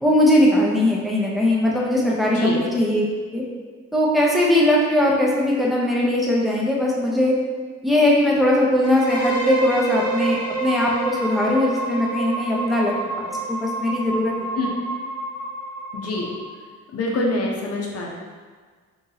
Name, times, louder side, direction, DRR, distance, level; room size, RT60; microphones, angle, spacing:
voice 1, 0.0-3.0 3.3-3.4 3.9-7.3 7.8-14.3, left 1 dB, ahead, -4 dB, 0.7 m, -20 dB
voice 2, 2.2-2.6 14.6-14.7 15.9-16.3 16.9-18.1, left 2 dB, 55° left, -1 dB, 0.8 m, -25 dB
sound 1, 8.8-16.6, right 3 dB, 20° left, 1.4 m, -28 dB
3.0 x 2.6 x 3.9 m, 1.5 s
cardioid pair, 90°, 30 cm